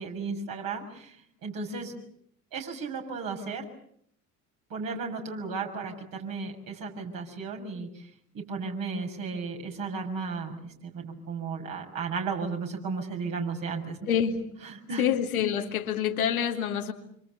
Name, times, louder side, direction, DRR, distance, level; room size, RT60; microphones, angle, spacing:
voice 1, 0.0-1.9 2.5-3.7 4.7-8.1 8.3-14.0 14.9-15.0, right 4 dB, 50° right, 2 dB, 6.7 m, -34 dB
voice 2, 14.1-14.5 15.0-16.9, left 8 dB, 80° left, 4 dB, 2.3 m, -27 dB
27.0 x 26.0 x 6.9 m, 0.68 s
figure-of-eight pair, 60°, 43 cm